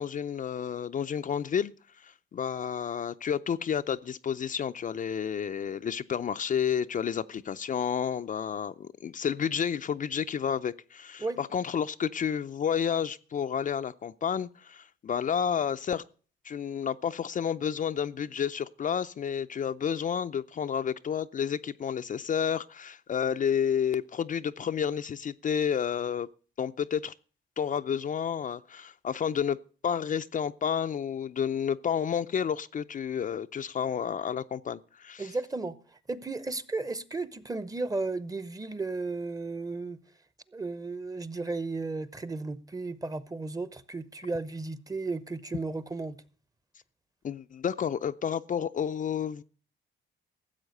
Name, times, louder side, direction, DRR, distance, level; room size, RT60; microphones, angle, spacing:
voice 1, 0.0-1.7 2.0-16.0 16.4-26.3 26.6-27.1 27.6-29.6 29.8-35.3 47.2-49.4, left 8 dB, 40° left, 0.5 m, -30 dB
voice 2, 35.2-40.0 40.5-46.2, right 3 dB, 20° right, 0.9 m, -34 dB
14.0 x 7.8 x 6.5 m
cardioid pair, 90°, 20 cm